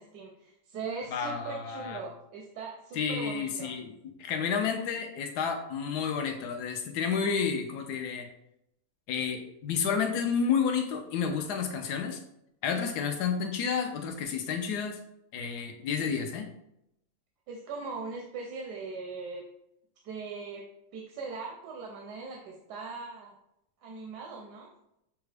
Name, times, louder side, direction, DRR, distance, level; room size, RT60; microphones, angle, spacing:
voice 1, 0.0-3.7 17.5-19.4 20.0-20.6 20.9-23.3 23.8-24.7, right 4 dB, 90° right, 0 dB, 1.2 m, -40 dB
voice 2, 1.1-2.0 2.9-3.9 4.2-8.3 9.1-12.2 12.6-15.0 15.3-16.5, left 6 dB, 80° left, 5 dB, 1.2 m, -30 dB
6.8 x 2.4 x 3.3 m, 0.81 s
omnidirectional pair, 1.7 m